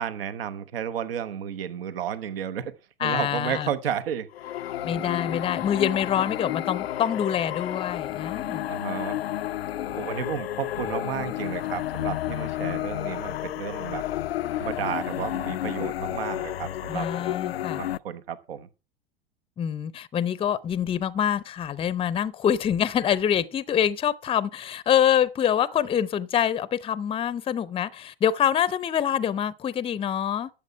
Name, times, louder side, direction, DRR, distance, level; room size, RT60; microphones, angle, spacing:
voice 1, 0.0-2.7 3.0-4.3 4.9-5.3 8.7-9.2 9.9-14.0 14.5-17.1 17.7-18.7, right 8 dB, 70° right, 1.1 m, -32 dB
voice 2, 3.0-3.7 4.8-8.7 16.9-17.8 19.6-30.5, left 9 dB, 20° left, 0.6 m, -25 dB
sound 1, 4.3-18.0, left 13 dB, 80° left, 0.5 m, -31 dB
12.5 x 7.2 x 4.6 m
figure-of-eight pair, 90°, 30 cm